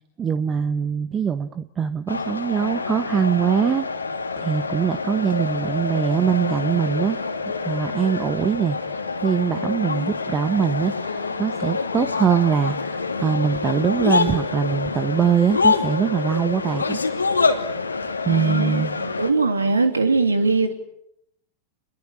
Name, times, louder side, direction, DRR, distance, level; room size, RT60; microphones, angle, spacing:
voice 1, 0.2-3.9 4.4-7.2 7.4-17.1 18.2-18.9, right 7 dB, 25° right, 12 dB, 1.1 m, -23 dB
sound 1, 2.1-19.3, left 4 dB, 80° left, 2.6 m, -26 dB
voice 2, 18.3-20.7, right 3 dB, 75° right, 8 dB, 3.2 m, -21 dB
29.0 x 21.5 x 8.8 m, 0.77 s
figure-of-eight pair, 90°, 0 cm